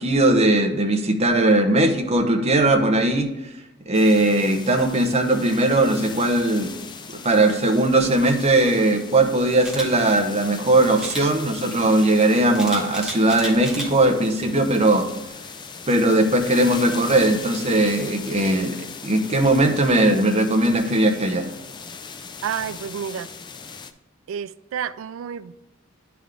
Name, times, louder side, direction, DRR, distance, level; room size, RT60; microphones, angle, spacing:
voice 1, 0.0-6.7 7.1-15.6 15.9-21.5, right 1 dB, 30° right, 0.8 m, -19 dB
sound 1, 3.9-23.9, left 5 dB, 20° left, 0.4 m, -39 dB
Camera, 9.6-9.9 11.0-11.3 12.6-13.9 14.4-14.6, equal, 5° right, 1.3 m, -32 dB
voice 2, 22.4-23.3 24.3-25.5, right 8 dB, 75° right, 0.3 m, -30 dB
10.5 x 3.5 x 3.7 m
head